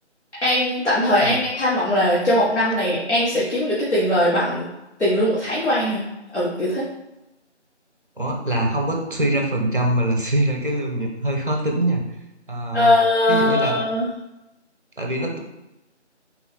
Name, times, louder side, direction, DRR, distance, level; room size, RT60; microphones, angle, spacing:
voice 1, 0.4-4.7 5.0-6.0 6.3-6.9 12.7-14.1, left 1 dB, 70° left, -8 dB, 1.1 m, -20 dB
voice 2, 8.2-12.0 12.5-12.9 13.3-13.7 15.0-15.4, right 1 dB, 45° right, 1 dB, 0.7 m, -23 dB
3.6 x 2.8 x 3.1 m, 0.93 s
figure-of-eight pair, 170°, 36 cm